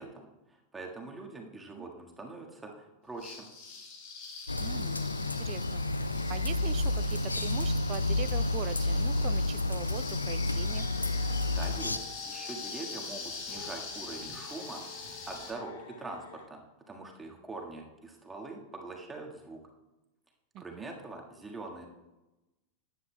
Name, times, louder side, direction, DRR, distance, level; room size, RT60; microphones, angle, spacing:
voice 1, 0.0-3.5 11.5-16.6 16.9-19.6 20.6-21.9, right 3 dB, 10° right, 0 dB, 1.6 m, -43 dB
sound 1, 3.2-15.5, left 4 dB, 45° left, 2.0 m, -43 dB
sound 2, 4.5-12.0, left 2 dB, 80° left, 0.4 m, -30 dB
voice 2, 4.6-5.9 6.3-10.9 20.5-20.9, right 14 dB, 40° right, 17 dB, 0.3 m, -42 dB
sound 3, 10.5-16.5, left 6 dB, 60° left, 1.0 m, -50 dB
14.0 x 9.8 x 2.3 m, 1.0 s
figure-of-eight pair, 90°, 0 cm